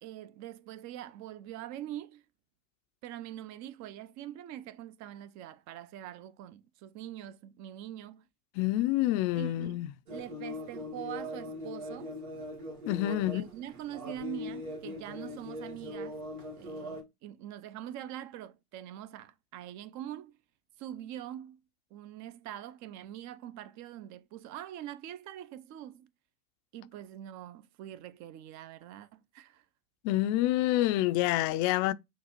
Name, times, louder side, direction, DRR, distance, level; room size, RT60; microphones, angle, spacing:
voice 1, 0.0-2.2 3.0-8.3 9.3-12.1 13.1-16.2 16.6-20.4 20.8-21.6 21.9-26.1 26.7-29.7, right 12 dB, 40° right, 0.6 m, -44 dB
voice 2, 8.6-9.9 12.9-13.4 30.0-31.9, left 15 dB, 45° left, 0.5 m, -27 dB
sound 1, 10.1-17.0, left 1 dB, 75° right, 1.8 m, -41 dB
6.5 x 2.4 x 2.9 m
hypercardioid pair, 90°, 44 cm